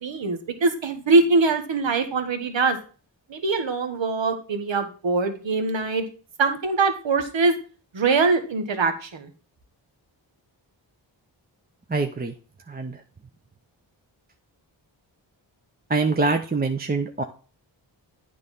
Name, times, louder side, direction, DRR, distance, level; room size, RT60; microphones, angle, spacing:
voice 1, 0.0-2.8 3.3-6.0 6.4-7.5 7.9-9.3, right 3 dB, 75° right, 8 dB, 1.2 m, -22 dB
voice 2, 11.9-12.3 12.7-13.0 15.9-17.2, right 3 dB, 20° right, 5 dB, 0.7 m, -24 dB
8.8 x 3.3 x 5.5 m, 0.39 s
cardioid pair, 50°, 46 cm